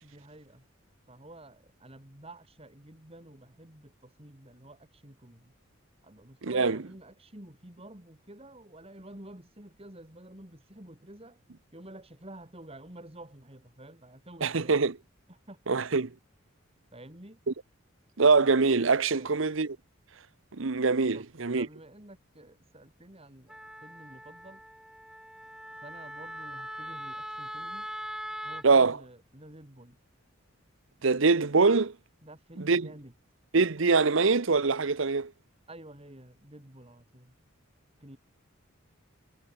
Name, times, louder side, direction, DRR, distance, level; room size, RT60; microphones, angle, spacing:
voice 1, 0.0-0.7 1.1-5.5 6.0-11.4 11.7-14.8 15.3-15.8 16.9-17.4 19.1-19.4 21.0-21.3 21.5-24.6 25.7-27.9 28.4-30.0 32.2-33.1 35.7-37.3 38.0-38.2, right 1 dB, 30° right, 3.6 m, -50 dB
voice 2, 6.4-6.8 14.4-14.9 15.7-16.1 18.2-19.7 20.5-21.7 28.6-29.0 31.0-31.9 32.7-32.9 33.5-35.3, right 4 dB, 65° right, 0.8 m, -23 dB
Wind instrument woodwind instrument, 23.5-28.7, equal, 5° right, 4.9 m, -41 dB
head